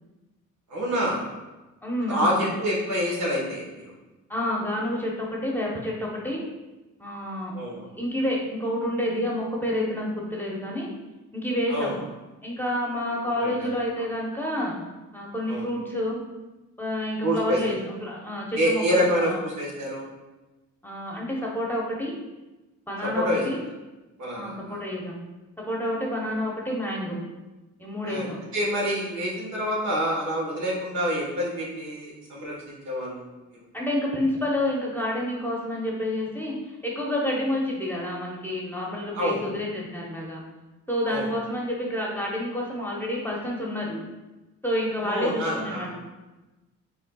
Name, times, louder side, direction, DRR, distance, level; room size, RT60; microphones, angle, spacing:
voice 1, 0.7-1.2 2.1-3.9 7.5-8.0 11.7-11.9 13.4-13.7 15.5-15.7 17.2-17.6 18.5-20.1 23.0-23.4 24.2-24.8 28.0-33.3 39.1-39.4 41.1-41.3 45.0-45.9, equal, 70° right, -3 dB, 1.5 m, -27 dB
voice 2, 1.8-2.4 4.3-6.4 7.0-7.5 8.0-10.9 11.3-11.9 12.4-14.7 15.1-16.2 16.8-19.4 20.8-22.2 22.9-23.6 24.3-25.2 25.6-27.2 27.8-28.4 33.7-36.5 36.8-40.4 40.9-44.0 44.6-45.9, left 1 dB, 5° left, -3 dB, 0.9 m, -29 dB
5.4 x 3.3 x 2.3 m, 1.1 s
cardioid pair, 90°, 30 cm